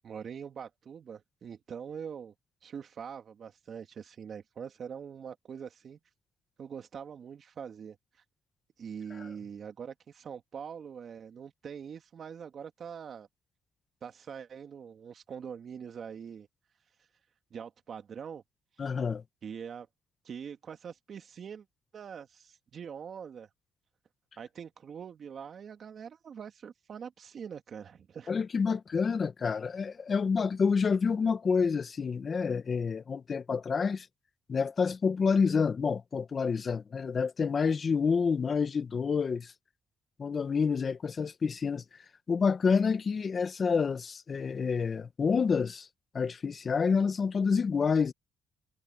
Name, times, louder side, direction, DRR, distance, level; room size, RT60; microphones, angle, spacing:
voice 1, 0.0-2.3 2.6-6.0 6.6-8.0 8.8-13.3 14.0-16.5 17.5-18.4 19.4-19.9 20.2-21.7 21.9-23.5 24.4-28.3, right 7 dB, 55° right, 2.6 m, -43 dB
voice 2, 18.8-19.2 28.3-34.1 34.5-39.5 40.2-41.8 42.3-45.9 46.1-48.1, left 5 dB, 40° left, 1.4 m, -28 dB
cardioid pair, 90°, 0 cm